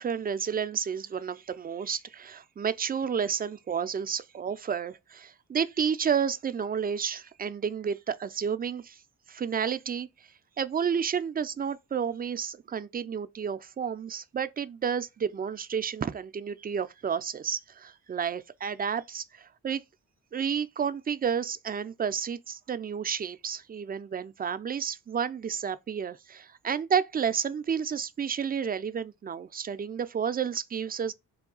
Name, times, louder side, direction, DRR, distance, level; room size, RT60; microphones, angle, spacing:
voice 1, 0.0-9.0 9.3-10.1 10.6-19.8 20.3-31.1, right 7 dB, 25° right, 0.4 m, -31 dB
3.5 x 2.3 x 3.8 m
supercardioid pair, 45°, 41 cm